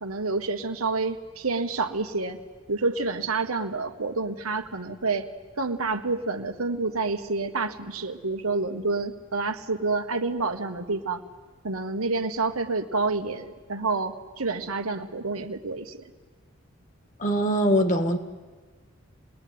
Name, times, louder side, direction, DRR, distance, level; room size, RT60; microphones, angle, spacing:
voice 1, 0.0-2.4 2.7-5.3 5.6-11.2 11.6-16.0, right 3 dB, 90° right, 7 dB, 1.6 m, -28 dB
voice 2, 17.2-18.2, equal, 35° left, 8 dB, 1.7 m, -22 dB
27.0 x 20.0 x 9.6 m, 1.4 s
head